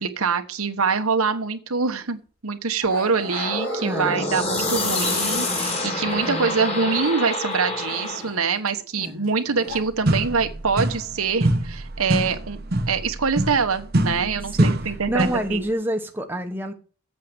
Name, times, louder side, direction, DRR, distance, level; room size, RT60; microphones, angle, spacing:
voice 1, 0.0-12.6 12.9-15.6, right 5 dB, 80° right, 7 dB, 1.2 m, -24 dB
Growling, 1.9-2.1 2.8-4.9 5.5-7.3 7.5-9.8, left 1 dB, 70° left, 3.4 m, -39 dB
sound 1, 3.3-8.4, left 2 dB, 30° left, 2.8 m, -27 dB
voice 2, 3.8-4.4 6.2-6.5 9.0-9.2 14.5-16.7, right 1 dB, 10° right, 3 dB, 1.1 m, -28 dB
sound 2, 9.7-9.8 10.1-11.2 11.4-15.5, right 1 dB, 45° right, 1.0 m, -24 dB
8.5 x 6.4 x 7.8 m, 0.39 s
head